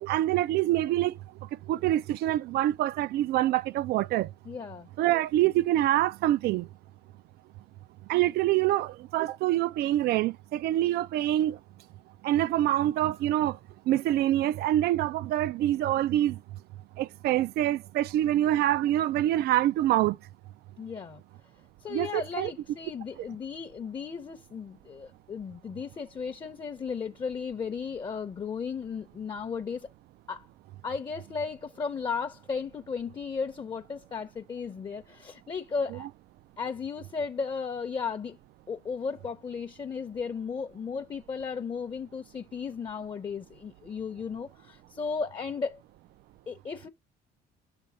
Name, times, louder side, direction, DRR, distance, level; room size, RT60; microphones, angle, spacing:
voice 1, 0.0-1.1 1.7-4.3 5.0-6.7 8.1-11.6 12.2-13.6 13.9-16.4 17.0-20.2 21.9-22.5, right 14 dB, 70° right, 0.4 m, -25 dB
voice 2, 4.4-4.9 20.8-21.2 21.8-29.9 30.3-30.4 30.8-36.1 36.6-38.4 38.7-45.8 46.5-46.9, left 5 dB, 30° left, 0.7 m, -35 dB
6.9 x 3.3 x 5.4 m
cardioid pair, 110°, 17 cm